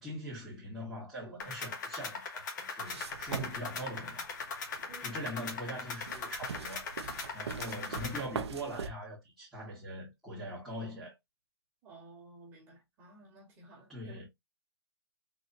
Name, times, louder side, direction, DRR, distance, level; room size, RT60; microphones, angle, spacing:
voice 1, 0.0-4.3 5.0-6.9 7.3-11.1 13.9-14.3, equal, ahead, 1.3 m, -42 dB
sound 1, 1.4-8.2, left 4 dB, 45° left, 1.1 m, -40 dB
sound 2, 2.9-8.9, right 6 dB, 80° right, 0.6 m, -42 dB
voice 2, 4.9-5.2 11.8-14.3, right 2 dB, 15° right, 1.6 m, -54 dB
4.0 x 2.9 x 2.6 m
hypercardioid pair, 170°, 14 cm